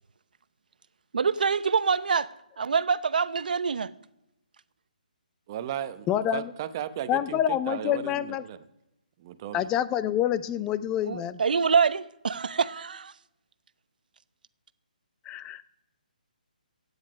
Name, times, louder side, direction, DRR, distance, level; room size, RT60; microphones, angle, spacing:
voice 1, 1.1-2.3 2.6-3.9 11.0-13.1, right 5 dB, 70° right, 0.8 m, -25 dB
voice 2, 5.5-6.1 6.3-8.6 9.2-9.7, right 10 dB, 30° right, 0.8 m, -35 dB
voice 3, 6.1-6.5 7.1-8.4 9.5-11.4 15.3-15.7, left 11 dB, 15° left, 0.5 m, -27 dB
16.0 x 9.7 x 5.3 m
hypercardioid pair, 160°, 5 cm